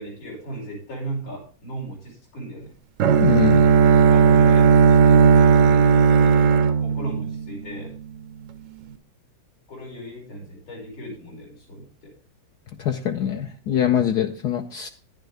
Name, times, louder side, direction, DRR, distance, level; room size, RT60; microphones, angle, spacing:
voice 1, 0.0-2.7 4.1-7.9 9.7-12.1, right 1 dB, 90° left, -2 dB, 6.1 m, -37 dB
Bowed string instrument, 3.0-7.9, right 6 dB, 70° right, 0.7 m, -15 dB
voice 2, 3.2-3.6 12.8-14.9, left 9 dB, 65° left, 5 dB, 1.1 m, -23 dB
10.5 x 10.0 x 3.4 m, 0.38 s
omnidirectional pair, 2.2 m